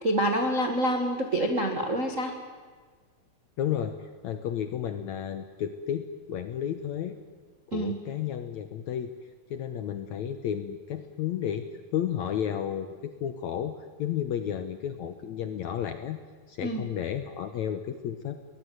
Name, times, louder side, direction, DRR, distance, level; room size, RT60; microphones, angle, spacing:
voice 1, 0.0-2.3 7.7-8.0 16.6-16.8, right 1 dB, 45° right, 4 dB, 0.9 m, -27 dB
voice 2, 3.6-7.2 7.7-9.1 9.5-11.7 11.9-13.7 14.0-16.2 16.5-18.4, left 9 dB, 70° left, 9 dB, 1.8 m, -32 dB
23.0 x 19.5 x 9.3 m, 1.5 s
omnidirectional pair, 4.3 m